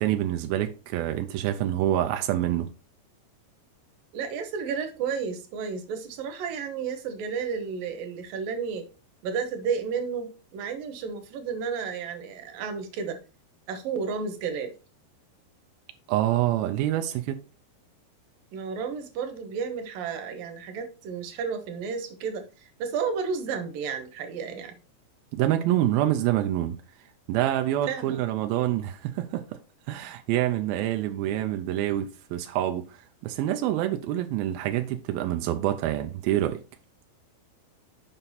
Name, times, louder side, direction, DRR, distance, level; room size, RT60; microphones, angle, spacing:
voice 1, 0.0-2.7 16.1-17.4 25.3-26.8 27.3-29.4 29.9-33.0 33.2-36.6, right 13 dB, 85° right, 2.1 m, -26 dB
voice 2, 4.1-8.9 9.2-13.2 13.7-14.8 18.5-24.7 27.8-28.2, right 6 dB, 70° right, 2.3 m, -32 dB
7.4 x 5.5 x 4.1 m
omnidirectional pair, 5.1 m